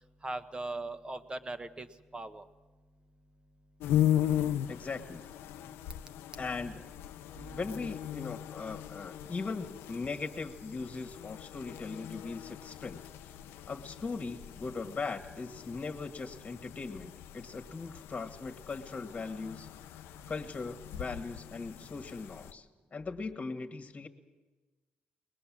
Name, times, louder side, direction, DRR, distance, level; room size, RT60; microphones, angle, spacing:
voice 1, 0.2-1.9 2.1-2.4 6.4-6.8 7.4-7.8, right 2 dB, 25° right, 10 dB, 1.3 m, -40 dB
sound 1, 3.8-22.5, left 11 dB, 90° left, 0.6 m, -38 dB
voice 2, 4.7-5.2 6.4-6.8 7.5-13.0 13.7-19.7 20.3-22.7 22.9-24.1, left 4 dB, 35° left, 6 dB, 1.6 m, -39 dB
21.5 x 20.0 x 7.4 m, 1.3 s
cardioid pair, 80°, 4 cm